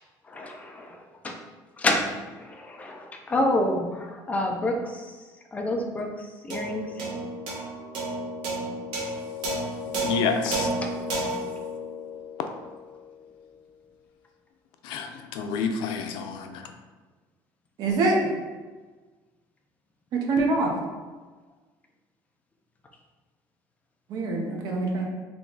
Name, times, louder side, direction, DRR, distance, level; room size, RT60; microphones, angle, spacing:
voice 1, 0.3-1.4 1.8-5.2 5.5-7.1 10.8-10.9, left 1 dB, 15° left, 2 dB, 0.5 m, -29 dB
sound 1, 6.5-13.1, right 1 dB, 85° right, 1.3 m, -32 dB
voice 2, 10.0-10.7 14.8-16.7, left 5 dB, 90° left, 5 dB, 0.5 m, -29 dB
voice 3, 17.8-18.2 20.1-20.7 24.1-25.0, right 3 dB, 55° right, 0 dB, 0.8 m, -24 dB
3.5 x 3.0 x 3.9 m, 1.3 s
cardioid pair, 165°, 8 cm